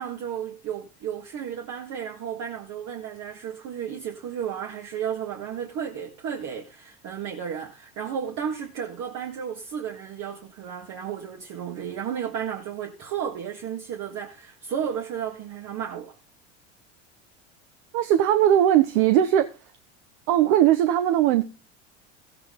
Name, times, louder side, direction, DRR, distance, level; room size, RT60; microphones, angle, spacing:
voice 1, 0.0-16.2, right 8 dB, 55° right, 1.9 m, -33 dB
voice 2, 17.9-19.5 20.3-21.4, right 11 dB, 70° right, 1.1 m, -19 dB
15.0 x 7.9 x 3.8 m
hypercardioid pair, 95°, 35 cm